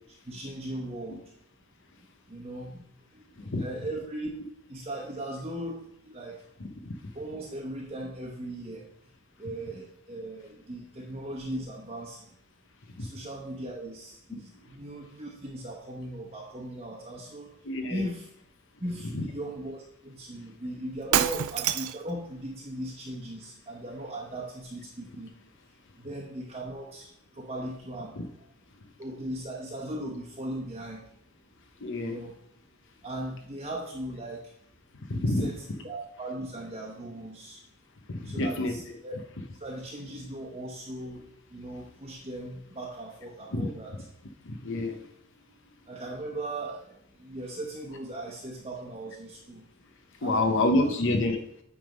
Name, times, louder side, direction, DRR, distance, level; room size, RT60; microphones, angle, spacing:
voice 1, 0.3-1.2 2.3-2.8 3.1-4.3 4.7-5.8 6.0-6.4 7.1-8.9 9.4-12.3 13.0-17.5 17.9-18.3 18.8-25.3 26.0-27.1 27.3-28.2 29.0-31.0 32.0-32.3 33.0-34.4 35.3-37.6 38.2-39.2 39.6-41.2 41.5-43.9 45.9-46.9 47.2-49.6 50.2-50.5 50.8-51.0, right 1 dB, 30° right, -3 dB, 1.0 m, -38 dB
voice 2, 17.6-18.0 19.1-19.2 28.2-28.3 31.8-32.2 35.1-35.5 38.1-38.8 43.5-43.7 44.4-45.0 50.2-51.4, left 2 dB, 60° left, 5 dB, 0.8 m, -27 dB
Shatter, 21.1-22.1, right 11 dB, 80° right, 0.4 m, -26 dB
9.1 x 3.6 x 5.2 m, 0.72 s
head